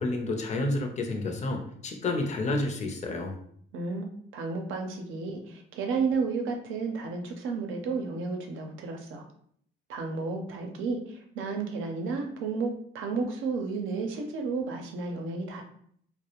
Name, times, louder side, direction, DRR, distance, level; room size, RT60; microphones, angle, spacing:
voice 1, 0.0-3.3, left 2 dB, 35° left, 3 dB, 0.5 m, -30 dB
voice 2, 3.7-4.1 4.3-9.2 9.9-15.6, right 4 dB, 85° right, 3 dB, 0.5 m, -32 dB
2.3 x 2.0 x 2.9 m, 0.64 s
cardioid pair, 90°, 20 cm